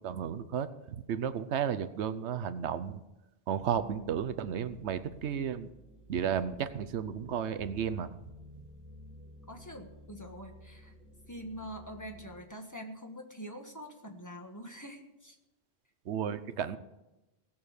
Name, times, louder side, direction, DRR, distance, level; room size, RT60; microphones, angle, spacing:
voice 1, 0.0-3.0 3.5-5.7 6.1-8.1 16.1-16.8, right 8 dB, 90° right, 11 dB, 1.0 m, -33 dB
sound 1, 3.6-12.4, equal, ahead, 2.0 m, -54 dB
voice 2, 3.8-4.1 9.5-10.9 11.3-15.4, equal, 15° left, 3 dB, 1.5 m, -45 dB
17.5 x 7.2 x 6.5 m, 0.98 s
omnidirectional pair, 1.1 m